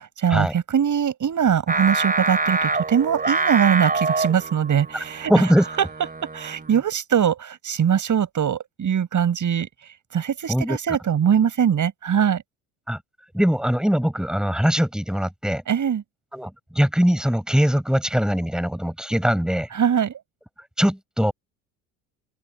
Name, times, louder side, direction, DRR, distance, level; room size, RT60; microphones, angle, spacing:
voice 1, 0.0-5.5 6.3-9.7 10.1-12.4 15.7-16.0 19.7-20.2, right 8 dB, 40° right, 7.7 m, -22 dB
Singing, 1.7-6.9, right 3 dB, 20° right, 4.1 m, -26 dB
voice 2, 5.3-5.7 10.5-11.0 12.9-13.0 13.3-15.6 16.3-19.7 20.8-21.3, equal, ahead, 7.7 m, -21 dB
open air
hypercardioid pair, 65°, 44 cm